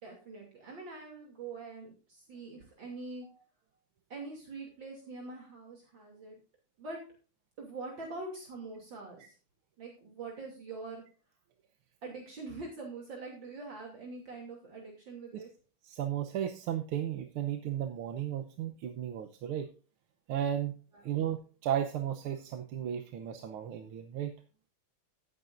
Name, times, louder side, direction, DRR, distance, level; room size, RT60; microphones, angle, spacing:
voice 1, 0.0-3.3 4.1-6.4 6.8-7.0 7.6-9.3 9.8-11.0 12.0-15.5 20.9-21.2, right 3 dB, 60° right, 0 dB, 3.4 m, -44 dB
voice 2, 15.8-19.7 20.3-20.8 21.0-24.3, right 10 dB, 80° right, 6 dB, 1.8 m, -34 dB
16.0 x 9.3 x 2.6 m, 0.37 s
omnidirectional pair, 2.3 m